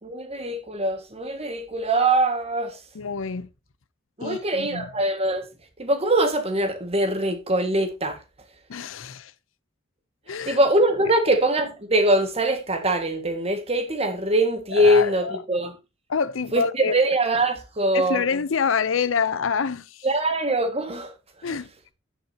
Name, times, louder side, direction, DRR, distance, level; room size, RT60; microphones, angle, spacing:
voice 1, 0.0-2.8 4.2-5.5 5.8-8.2 10.4-15.7 16.5-18.2 20.0-21.1 21.4-21.6, right 1 dB, 30° right, 1.8 m, -23 dB
voice 2, 2.9-3.5 4.2-4.9 8.7-9.3 10.3-10.6 14.7-15.4 16.1-16.9 17.9-20.1 21.4-21.7, left 6 dB, 70° left, 0.6 m, -26 dB
11.5 x 8.7 x 2.8 m
head